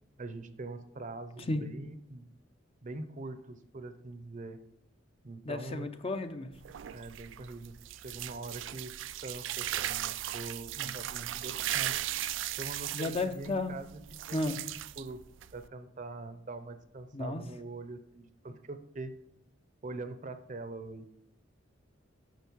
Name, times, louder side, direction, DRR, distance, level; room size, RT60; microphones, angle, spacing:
voice 1, 0.2-2.3 2.8-4.6 5.2-5.9 6.9-9.0 9.2-12.0 12.6-14.0 14.3-14.6 15.0-15.2 15.5-19.2 19.8-21.1, right 2 dB, 40° right, 10 dB, 0.7 m, -43 dB
voice 2, 5.4-6.5 10.8-10.9 12.9-13.7 14.3-14.6 17.1-17.4, left 2 dB, 30° left, 8 dB, 0.6 m, -33 dB
sound 1, 6.5-15.7, right 13 dB, 65° right, 0.4 m, -37 dB
9.2 x 6.4 x 4.6 m, 0.79 s
head